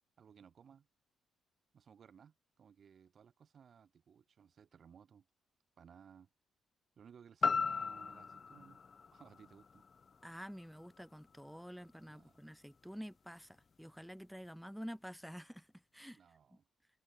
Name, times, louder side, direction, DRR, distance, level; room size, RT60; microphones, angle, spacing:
voice 1, 0.2-0.9 1.7-5.3 5.8-6.3 7.0-8.8 9.1-9.8 12.0-12.4 16.1-16.7, right 7 dB, 50° right, 4.9 m, -60 dB
sound 1, 7.4-11.5 11.9-12.0, left 5 dB, 40° left, 0.5 m, -38 dB
voice 2, 10.2-16.2 16.5-16.6, equal, ahead, 0.7 m, -49 dB
cardioid pair, 90°, 0 cm